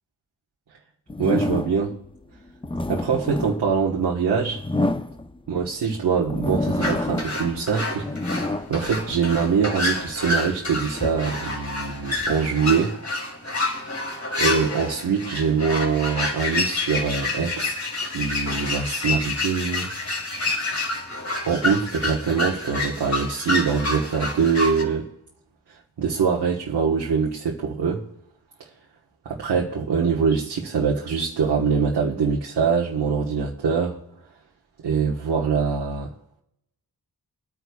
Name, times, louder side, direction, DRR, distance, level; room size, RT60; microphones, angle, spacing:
sound 1, 1.1-2.0 2.5-5.7 6.2-7.5 7.8-9.7 10.3-12.4, left 2 dB, 15° left, 0.7 m, -29 dB
voice 1, 1.2-1.9 2.9-4.6 5.5-8.1 8.7-12.9 14.4-19.9 21.4-25.1 26.0-28.1 29.2-34.0 34.8-36.1, right 6 dB, 85° right, 1.4 m, -23 dB
sound 2, 6.8-24.8, left 2 dB, 45° left, 3.0 m, -28 dB
23.0 x 9.5 x 2.4 m
cardioid pair, 55°, 39 cm